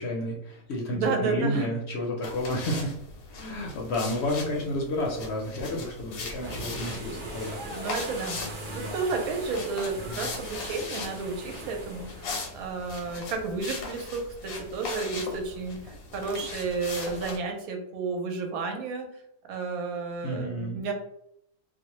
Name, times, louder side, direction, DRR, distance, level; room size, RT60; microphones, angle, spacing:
voice 1, 0.0-2.9 3.3-7.6 8.3-9.0 10.1-10.3 20.2-20.8, left 1 dB, 60° left, -1 dB, 0.7 m, -31 dB
voice 2, 0.9-1.7 7.7-8.4 8.7-12.3 12.5-19.1 19.5-20.9, right 4 dB, 90° right, 3 dB, 1.1 m, -32 dB
sound 1, 2.2-17.4, left 3 dB, 85° left, 1.1 m, -39 dB
sound 2, 4.9-12.4, right 1 dB, 55° right, 0.7 m, -41 dB
2.5 x 2.1 x 2.8 m, 0.74 s
omnidirectional pair, 1.5 m